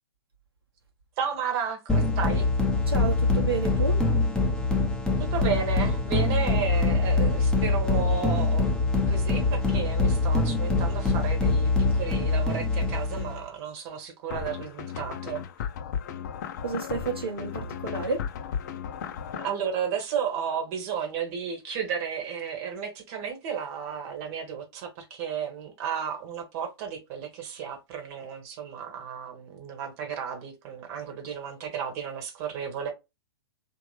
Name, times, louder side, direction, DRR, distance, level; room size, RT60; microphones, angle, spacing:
voice 1, 1.2-2.5 5.3-15.4 19.4-32.9, right 7 dB, 40° right, 1.1 m, -33 dB
sound 1, 1.9-13.4, left 3 dB, 5° left, 0.8 m, -24 dB
voice 2, 2.9-4.0 16.6-18.2, right 4 dB, 75° right, 1.0 m, -30 dB
sound 2, 14.3-19.5, left 7 dB, 45° left, 0.6 m, -35 dB
3.2 x 2.7 x 3.1 m
figure-of-eight pair, 110°, 13 cm